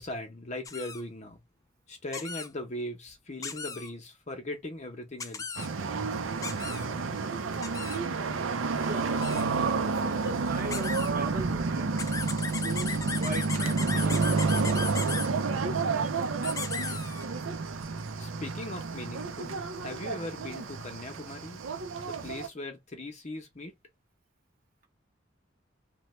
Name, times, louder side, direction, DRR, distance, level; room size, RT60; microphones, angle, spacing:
voice 1, 0.0-1.4 1.9-5.7 18.2-21.6 22.0-23.7, left 1 dB, 35° left, 0.8 m, -39 dB
sound 1, 0.7-1.0 2.1-2.5 3.4-3.9 5.2-5.7 6.4-6.9 7.6-8.0 9.1-9.4 10.7-11.1 12.0-15.3 16.4-17.3, left 5 dB, 15° left, 0.3 m, -36 dB
sound 2, 5.6-22.5, right 4 dB, 85° right, 0.5 m, -30 dB
voice 2, 9.8-11.9 12.5-14.5, right 2 dB, 50° right, 1.0 m, -39 dB
3.0 x 2.2 x 3.1 m
head